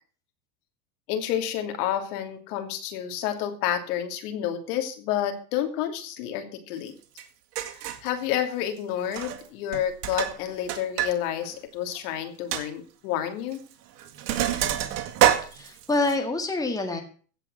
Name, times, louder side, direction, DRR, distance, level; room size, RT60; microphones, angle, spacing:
voice 1, 1.1-6.9 7.7-13.6, left 10 dB, 65° left, 6 dB, 2.9 m, -30 dB
Sink (filling or washing), 7.2-7.3 7.5-8.1 9.0-9.5 9.7-11.1 11.4-11.5 11.9-12.0 12.5-12.6 13.5-13.7 14.0-16.1, right 12 dB, 65° right, 2.1 m, -26 dB
voice 2, 15.4-17.0, left 2 dB, 5° left, 3 dB, 2.0 m, -27 dB
16.5 x 5.6 x 7.8 m, 0.41 s
supercardioid pair, 125°, 49 cm